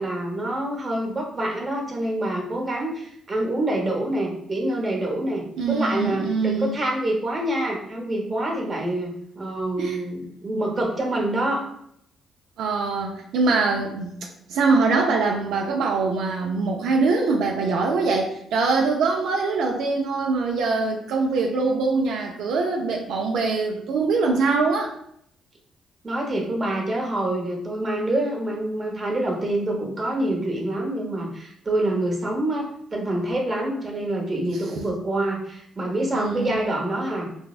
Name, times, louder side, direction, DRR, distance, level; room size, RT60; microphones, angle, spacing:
voice 1, 0.0-11.6 26.0-37.3, right 1 dB, 25° right, 0 dB, 0.8 m, -26 dB
voice 2, 5.6-6.8 9.8-10.0 12.6-14.1 14.5-25.0 36.1-36.6, right 4 dB, 80° right, 1 dB, 0.3 m, -23 dB
3.3 x 2.0 x 2.4 m, 0.71 s
cardioid pair, 90°, 0 cm